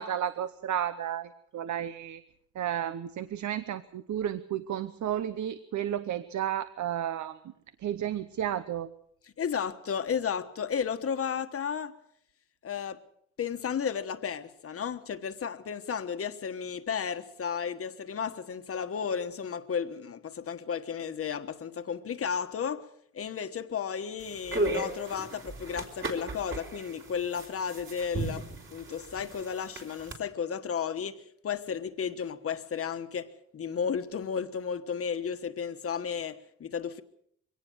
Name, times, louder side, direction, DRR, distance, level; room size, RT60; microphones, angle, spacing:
voice 1, 0.0-2.2 2.5-7.4 7.8-8.9, right 10 dB, 75° right, 0.9 m, -32 dB
voice 2, 9.4-11.9 12.6-13.0 13.4-22.9 23.1-28.4 28.7-37.0, left 7 dB, 50° left, 1.3 m, -33 dB
sound 1, 24.2-30.2, right 2 dB, 40° right, 3.6 m, -36 dB
23.0 x 18.0 x 6.3 m
wide cardioid pair, 165°, 30 cm